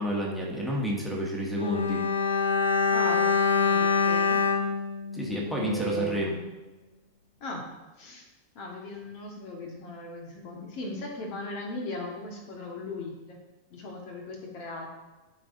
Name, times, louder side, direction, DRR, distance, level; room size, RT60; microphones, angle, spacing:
voice 1, 0.0-2.0 5.1-6.3, equal, 5° left, -2 dB, 1.6 m, -30 dB
Bowed string instrument, 1.6-6.0 6.3-6.4, left 5 dB, 75° left, 0.6 m, -25 dB
voice 2, 2.9-4.4 5.5-6.3 7.4-7.7 8.0-8.3 8.5-13.4 13.7-14.9, left 1 dB, 45° left, 1 dB, 1.5 m, -37 dB
12.5 x 4.7 x 2.7 m, 1.1 s
figure-of-eight pair, 90°, 0 cm